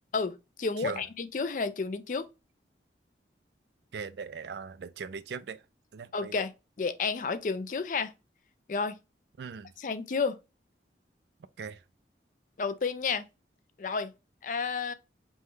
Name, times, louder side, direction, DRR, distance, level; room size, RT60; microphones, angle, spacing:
voice 1, 0.1-2.3 6.1-6.5 6.8-8.1 8.7-9.0 9.8-10.4 12.6-13.3 13.8-14.1 14.4-14.9, left 4 dB, 45° left, 0.4 m, -31 dB
voice 2, 3.9-5.6 5.9-6.3 9.4-9.7 11.6-11.8, right 5 dB, 70° right, 0.4 m, -39 dB
5.4 x 2.2 x 3.1 m
head